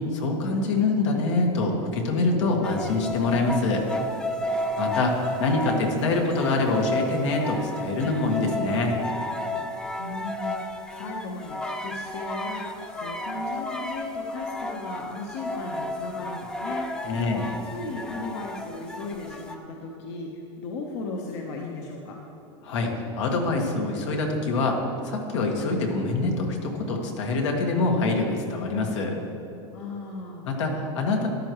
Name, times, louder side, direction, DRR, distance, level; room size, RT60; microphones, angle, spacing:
voice 1, 0.1-3.8 4.8-5.1 5.4-8.9 17.0-17.5 22.6-24.8 25.0-29.2 30.5-31.3, left 3 dB, 85° left, 1 dB, 1.7 m, -25 dB
sound 1, 2.6-19.6, left 1 dB, 5° left, 0.4 m, -33 dB
voice 2, 10.0-17.3 17.6-22.2 29.7-30.5, left 3 dB, 65° left, 0 dB, 1.1 m, -36 dB
13.5 x 10.5 x 3.1 m, 3.0 s
supercardioid pair, 165°, 15 cm